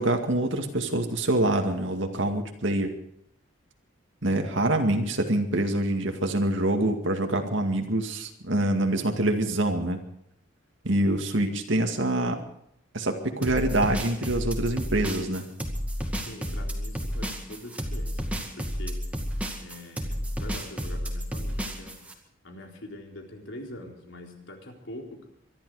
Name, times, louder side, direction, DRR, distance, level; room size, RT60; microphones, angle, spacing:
voice 1, 0.0-2.9 4.2-10.0 10.8-12.4 12.9-15.4, right 1 dB, 65° right, 4 dB, 2.1 m, -25 dB
voice 2, 11.0-11.4 16.3-19.0 19.6-22.0 22.4-25.2, left 1 dB, 70° left, 2 dB, 4.0 m, -44 dB
sound 1, 13.4-22.1, equal, 5° right, 2.1 m, -31 dB
24.0 x 12.0 x 4.9 m, 0.75 s
head